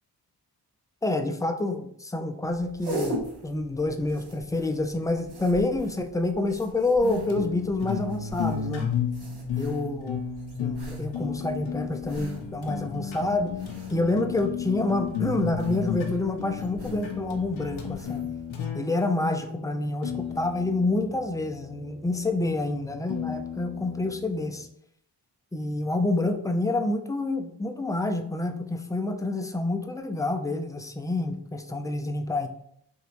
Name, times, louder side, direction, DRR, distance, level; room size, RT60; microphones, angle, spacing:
voice 1, 1.0-8.9 9.6-10.2 10.6-13.5 13.9-18.3 18.7-24.7 25.5-32.5, left 2 dB, 10° left, 7 dB, 0.3 m, -28 dB
sound 1, 2.4-18.5, right 1 dB, 55° right, 1.4 m, -42 dB
sound 2, 7.0-24.7, left 7 dB, 80° left, 0.7 m, -34 dB
3.1 x 2.8 x 2.9 m, 0.68 s
cardioid pair, 45°, 46 cm